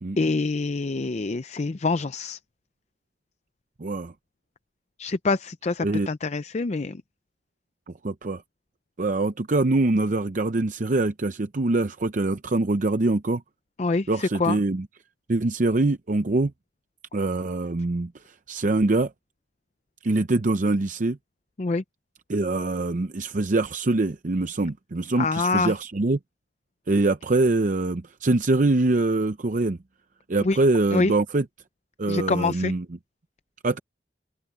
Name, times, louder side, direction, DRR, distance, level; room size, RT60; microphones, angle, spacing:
voice 1, 0.2-2.4 5.0-7.0 13.8-14.6 21.6-21.8 25.2-25.7 30.4-30.6 30.9-31.1 32.1-32.7, left 3 dB, 40° left, 0.5 m, -25 dB
voice 2, 3.8-4.1 5.8-6.1 7.9-8.4 9.0-13.4 14.1-14.9 15.3-16.5 17.1-19.1 20.0-21.2 22.3-26.2 26.9-29.8 30.3-31.5 32.0-32.9 33.6-33.8, right 2 dB, 45° right, 0.6 m, -24 dB
head